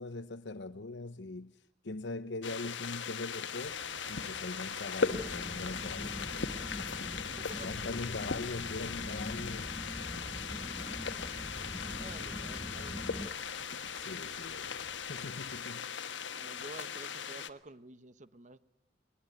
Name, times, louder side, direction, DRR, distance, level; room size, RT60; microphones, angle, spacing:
voice 1, 0.0-3.8 4.1-7.3 7.6-9.7 14.0-15.8, left 2 dB, 70° left, 0.8 m, -42 dB
sound 1, 2.4-17.5, left 6 dB, 90° left, 1.3 m, -39 dB
sound 2, 3.6-15.6, right 2 dB, 80° right, 4.5 m, -54 dB
sound 3, 5.1-13.3, left 1 dB, 15° left, 0.8 m, -43 dB
voice 2, 7.4-7.7 12.0-13.3 16.4-18.6, right 2 dB, 40° right, 1.0 m, -50 dB
20.5 x 20.5 x 9.5 m
head